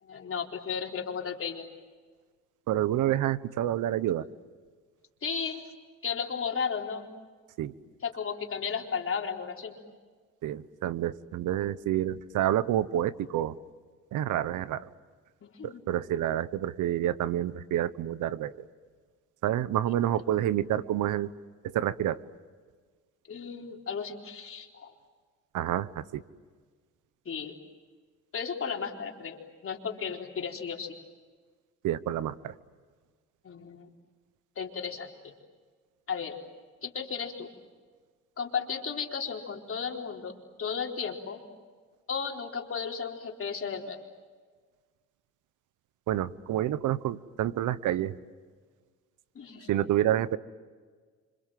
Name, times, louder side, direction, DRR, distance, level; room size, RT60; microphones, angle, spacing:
voice 1, 0.0-1.6 5.2-5.6 6.0-7.0 8.0-9.8 15.4-16.0 23.3-24.9 27.3-27.6 28.3-30.9 33.4-33.9 34.6-35.1 36.1-36.4 36.8-37.5 38.4-40.3 40.6-41.4 42.1-44.0 49.3-49.7, left 6 dB, 45° left, 2 dB, 4.2 m, -34 dB
voice 2, 2.7-4.3 7.6-7.7 10.4-13.6 14.1-14.9 15.6-18.7 19.4-21.3 21.6-22.2 25.5-26.2 31.8-32.5 46.1-48.1 49.7-50.4, right 12 dB, 85° right, 16 dB, 1.1 m, -28 dB
29.0 x 26.5 x 7.6 m, 1.5 s
cardioid pair, 90°, 30 cm